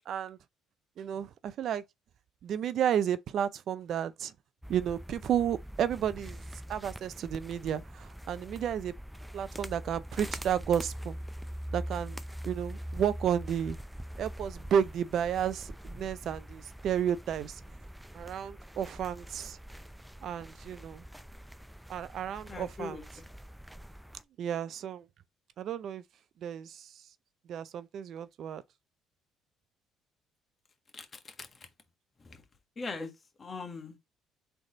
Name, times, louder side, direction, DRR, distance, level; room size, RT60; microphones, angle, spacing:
voice 1, 0.1-0.4 1.0-1.8 2.4-4.3 4.7-6.4 6.7-8.9 9.3-11.2 11.7-12.2 12.4-13.8 14.2-17.6 18.1-19.6 20.2-21.0 21.9-23.0 24.4-25.1 25.6-26.0 26.4-26.9 27.5-28.6, right 9 dB, 60° right, 0.4 m, -32 dB
sound 1, 4.6-24.2, equal, 5° right, 0.4 m, -43 dB
voice 2, 22.5-23.2 30.9-31.7 32.2-32.4 32.8-33.1 33.4-34.0, left 3 dB, 35° left, 1.5 m, -41 dB
3.9 x 3.4 x 3.8 m
supercardioid pair, 80°, 0 cm